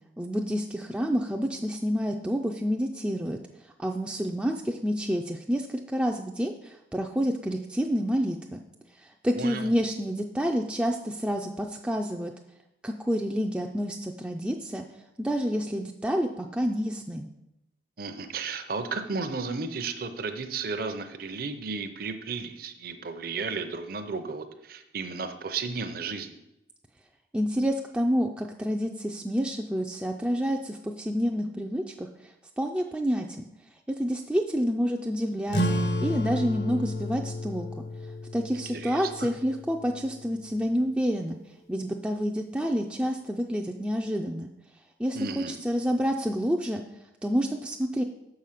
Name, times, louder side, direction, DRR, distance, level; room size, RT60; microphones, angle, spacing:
voice 1, 0.2-3.4 3.8-8.6 9.0-12.3 12.8-14.9 15.2-17.3 27.3-32.1 32.6-33.5 34.0-37.7 38.3-41.4 41.7-44.5 45.0-46.8 47.2-48.0, equal, 5° right, 1 dB, 0.3 m, -28 dB
voice 2, 9.4-9.7 18.0-26.4 38.7-39.3 45.1-45.6, right 4 dB, 50° right, 8 dB, 0.6 m, -34 dB
sound 1, 35.5-40.6, left 1 dB, 60° left, 0.7 m, -32 dB
6.9 x 4.9 x 5.8 m, 0.87 s
head